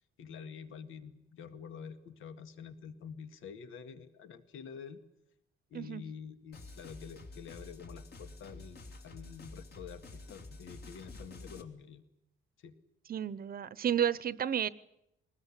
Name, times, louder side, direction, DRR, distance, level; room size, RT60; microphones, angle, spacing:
voice 1, 0.2-5.0 5.7-12.0 12.6-12.8, left 6 dB, 80° left, 1.9 m, -48 dB
sound 1, 6.5-11.6, left 2 dB, 50° left, 3.0 m, -49 dB
voice 2, 13.1-14.7, right 9 dB, 45° right, 0.8 m, -31 dB
22.0 x 20.0 x 10.0 m
cardioid pair, 155°, 20 cm